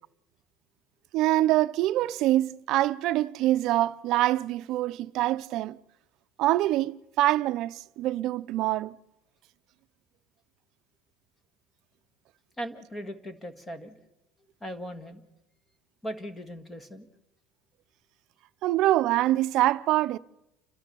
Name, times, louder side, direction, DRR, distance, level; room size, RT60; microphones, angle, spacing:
voice 1, 1.1-5.8 6.4-8.9 18.6-20.2, right 15 dB, 55° right, 0.6 m, -25 dB
voice 2, 12.6-13.9 14.6-15.2 16.0-17.1, equal, 15° left, 1.7 m, -38 dB
29.5 x 12.5 x 7.0 m
cardioid pair, 150°, 0 cm